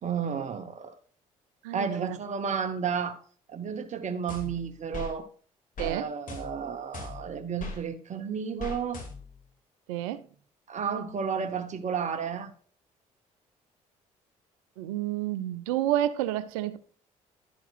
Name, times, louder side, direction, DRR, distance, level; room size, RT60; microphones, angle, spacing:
voice 1, 0.0-1.0 1.7-3.2 3.5-5.3 5.8-9.0 10.7-12.5, right 6 dB, 45° right, 1.1 m, -32 dB
voice 2, 1.6-2.2 5.8-6.1 9.9-10.2 14.8-16.8, right 13 dB, 80° right, 0.7 m, -30 dB
sound 1, 4.3-5.1 5.8-6.0 6.3-7.8 8.6-9.4, left 2 dB, 50° left, 2.7 m, -39 dB
11.0 x 7.3 x 2.5 m
hypercardioid pair, 50°, 17 cm